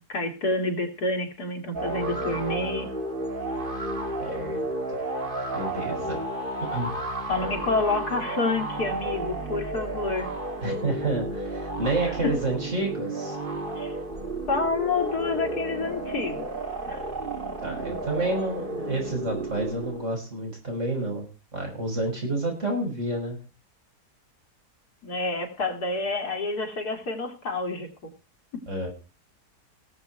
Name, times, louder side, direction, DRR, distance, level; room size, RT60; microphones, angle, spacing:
voice 1, 0.0-2.9 7.3-10.3 12.2-12.3 13.8-13.9 14.5-16.5 16.9-17.0 25.0-28.1 28.5-28.6, left 3 dB, 80° left, 4 dB, 3.0 m, -28 dB
sound 1, 1.7-20.2, right 2 dB, 35° right, 2.8 m, -32 dB
voice 2, 4.2-4.6 5.5-6.2 6.6-7.3 10.6-13.4 17.6-21.3 21.5-23.4 28.7-28.9, right 2 dB, 50° right, 1 dB, 6.1 m, -29 dB
18.0 x 8.1 x 4.5 m, 0.32 s
omnidirectional pair, 1.7 m